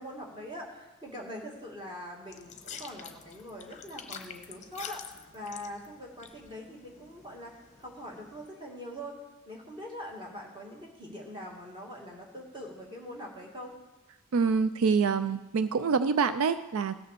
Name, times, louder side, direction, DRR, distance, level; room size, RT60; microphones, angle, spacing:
voice 1, 0.0-9.2 9.5-13.7, equal, 20° right, -1 dB, 2.4 m, -43 dB
sound 1, 2.3-8.5, left 7 dB, 30° left, 0.9 m, -47 dB
voice 2, 14.3-17.0, right 5 dB, 75° right, 12 dB, 0.4 m, -26 dB
16.5 x 6.6 x 6.8 m, 1.1 s
head